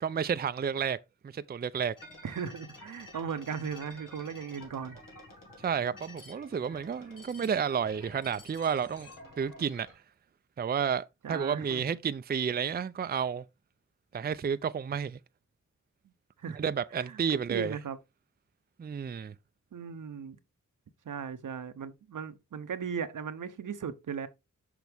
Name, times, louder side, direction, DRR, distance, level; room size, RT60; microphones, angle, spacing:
voice 1, 0.0-1.0 1.2-1.9 5.6-9.1 9.4-9.9 10.6-13.4 14.1-15.2 16.4-17.8 18.8-19.3, right 7 dB, 30° right, 0.4 m, -31 dB
sound 1, 2.0-9.9, left 1 dB, 90° left, 2.2 m, -51 dB
voice 2, 2.2-5.0 11.2-11.9 16.4-16.6 17.0-18.0 19.7-20.4 21.1-24.3, right 6 dB, 75° right, 0.8 m, -37 dB
6.2 x 5.8 x 3.4 m
cardioid pair, 55°, 32 cm